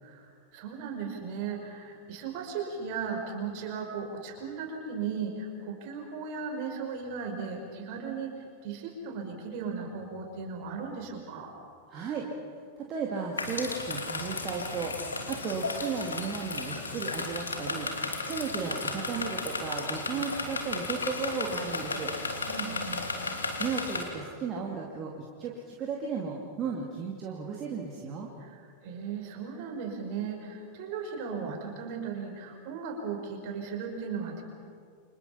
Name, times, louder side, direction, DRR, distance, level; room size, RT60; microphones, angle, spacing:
voice 1, 0.0-11.5 22.5-23.1 28.4-34.4, right 5 dB, 45° right, 3 dB, 5.1 m, -37 dB
voice 2, 11.9-14.9 15.3-17.9 18.3-22.1 23.6-25.1 25.4-28.3, right 5 dB, 30° right, -2 dB, 2.7 m, -35 dB
sound 1, 13.4-24.0, left 3 dB, 75° left, 3.0 m, -34 dB
30.0 x 26.0 x 5.8 m, 2.2 s
figure-of-eight pair, 90°, 0 cm